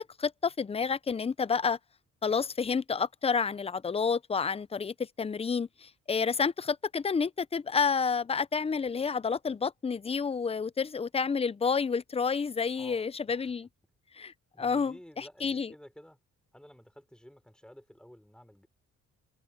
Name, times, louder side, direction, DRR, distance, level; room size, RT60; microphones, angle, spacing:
voice 1, 0.0-1.8 2.2-13.7 14.1-15.7, left 5 dB, 20° left, 0.6 m, -30 dB
voice 2, 12.8-13.5 14.5-16.2 16.5-18.7, equal, 5° left, 4.1 m, -53 dB
open air
cardioid pair, 90°, 30 cm